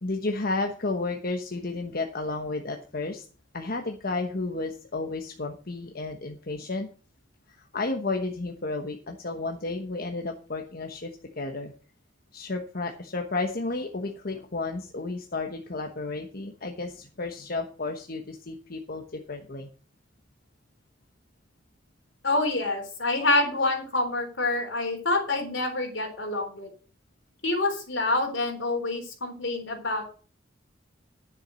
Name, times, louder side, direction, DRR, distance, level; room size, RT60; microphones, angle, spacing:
voice 1, 0.0-3.2 3.5-6.9 7.5-11.7 12.3-19.7, left 3 dB, 55° left, 4 dB, 1.2 m, -32 dB
voice 2, 22.2-26.7 27.4-30.0, left 2 dB, 75° left, 3 dB, 3.8 m, -27 dB
10.0 x 7.5 x 6.3 m, 0.40 s
head